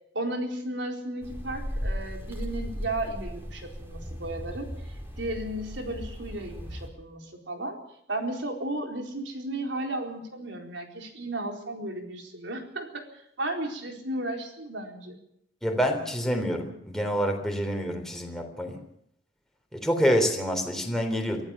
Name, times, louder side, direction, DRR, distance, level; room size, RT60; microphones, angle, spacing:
voice 1, 0.1-7.8 8.1-15.2, right 1 dB, 85° right, 3 dB, 4.2 m, -34 dB
sound 1, 1.2-6.9, equal, 15° right, 4.2 m, -36 dB
voice 2, 15.6-18.8 19.7-21.4, equal, 5° left, 3 dB, 3.5 m, -27 dB
23.5 x 15.0 x 7.3 m, 0.74 s
head